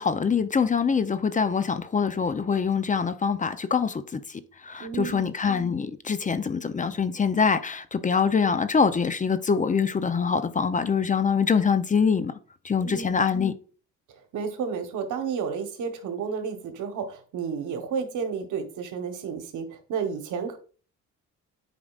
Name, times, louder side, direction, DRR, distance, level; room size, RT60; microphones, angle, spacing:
voice 1, 0.0-12.3 12.6-13.5, left 6 dB, 25° left, 0.5 m, -24 dB
voice 2, 4.8-5.2 12.8-13.1 14.3-20.6, right 6 dB, 80° right, 1.2 m, -31 dB
8.5 x 5.0 x 2.4 m
cardioid pair, 90°, 30 cm